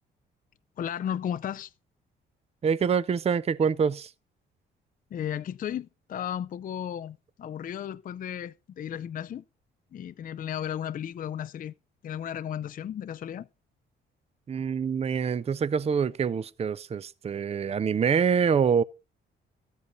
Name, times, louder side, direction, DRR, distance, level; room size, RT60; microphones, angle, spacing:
voice 1, 0.8-1.7 5.1-9.4 9.9-11.7 12.0-13.5, left 9 dB, 45° left, 0.5 m, -34 dB
voice 2, 2.6-4.1 14.5-18.8, right 6 dB, 30° right, 0.5 m, -25 dB
13.5 x 8.3 x 3.9 m
cardioid pair, 90°, 20 cm